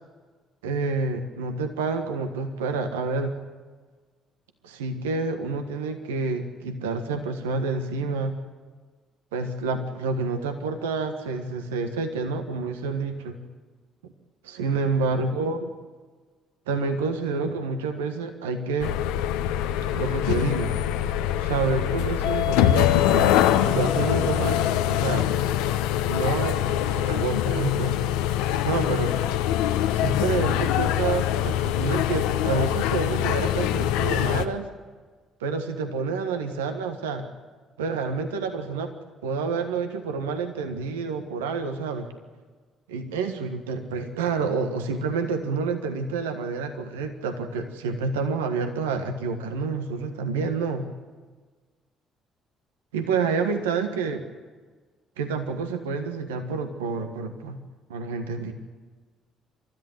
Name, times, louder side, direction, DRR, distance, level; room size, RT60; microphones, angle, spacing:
voice 1, 0.6-3.3 4.6-8.4 9.3-13.4 14.4-15.6 16.7-19.0 19.9-20.7 21.4-23.3 23.6-25.3 26.1-28.0 28.6-29.2 29.9-34.7 35.4-37.3 37.8-38.9 39.2-42.1 42.9-50.9 52.9-54.2 55.2-57.6 57.9-58.5, right 4 dB, 85° right, 6 dB, 1.5 m, -28 dB
sound 1, 18.8-34.4, left 11 dB, 80° left, 0.9 m, -24 dB
29.0 x 13.5 x 7.9 m, 1.4 s
hypercardioid pair, 50°, 0 cm